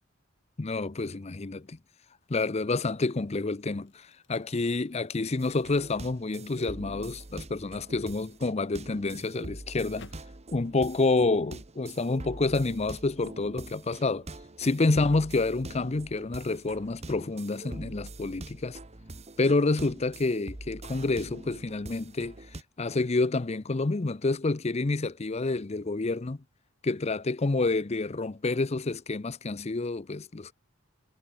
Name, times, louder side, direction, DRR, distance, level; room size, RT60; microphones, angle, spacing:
voice 1, 0.6-1.8 2.3-10.1 10.5-14.3 14.6-18.8 19.4-22.4 22.8-26.4 26.8-30.5, left 3 dB, 30° left, 0.6 m, -28 dB
sound 1, 1.5-1.8 2.4-10.4, left 2 dB, 60° left, 2.1 m, -59 dB
sound 2, 5.4-22.6, right 2 dB, 30° right, 1.4 m, -44 dB
head